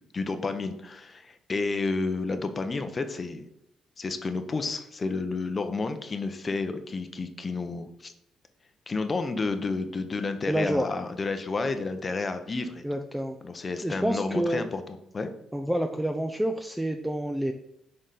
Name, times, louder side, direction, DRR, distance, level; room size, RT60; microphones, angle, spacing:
voice 1, 0.1-3.5 4.0-8.1 8.9-12.8 13.4-14.8 15.1-15.3, left 3 dB, 35° left, 8 dB, 0.6 m, -31 dB
voice 2, 10.5-10.9 12.8-13.4 13.8-14.6 15.5-17.5, right 1 dB, 5° right, 5 dB, 0.4 m, -28 dB
6.5 x 3.8 x 3.8 m, 0.81 s
cardioid pair, 90°, 0 cm